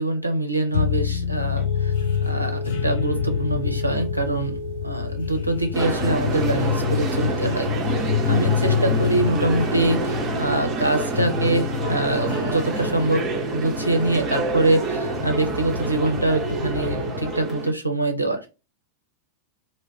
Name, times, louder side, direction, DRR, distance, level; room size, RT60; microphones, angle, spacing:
voice 1, 0.0-1.9 2.3-4.6 4.8-13.2 13.5-18.4, right 2 dB, 85° right, 5 dB, 0.5 m, -24 dB
sound 1, 0.7-17.5, left 8 dB, 60° left, 0.4 m, -27 dB
Telephone, 1.6-17.6, right 3 dB, 25° left, 0.8 m, -37 dB
sound 2, 5.7-17.7, right 4 dB, 30° right, 0.5 m, -28 dB
2.3 x 2.1 x 3.2 m, 0.29 s
figure-of-eight pair, 90°, 0 cm